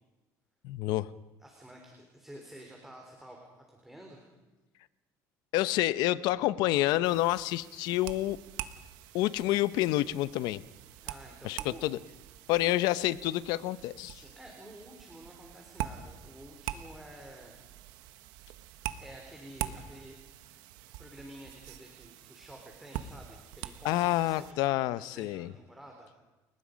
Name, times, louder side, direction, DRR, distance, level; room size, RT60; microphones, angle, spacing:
voice 1, 0.6-1.1 5.5-8.4 9.1-10.6 11.4-12.0 12.5-14.2 23.8-25.5, left 16 dB, 80° left, 16 dB, 0.8 m, -28 dB
voice 2, 1.4-4.3 11.0-11.8 12.5-13.1 14.1-17.6 17.8-17.9 19.0-20.2 20.4-20.6 21.0-26.1, right 1 dB, 5° right, 0 dB, 3.7 m, -50 dB
sound 1, 7.0-24.5, right 12 dB, 90° right, 1.2 m, -44 dB
30.0 x 19.0 x 5.2 m, 1.1 s
cardioid pair, 125°, 7 cm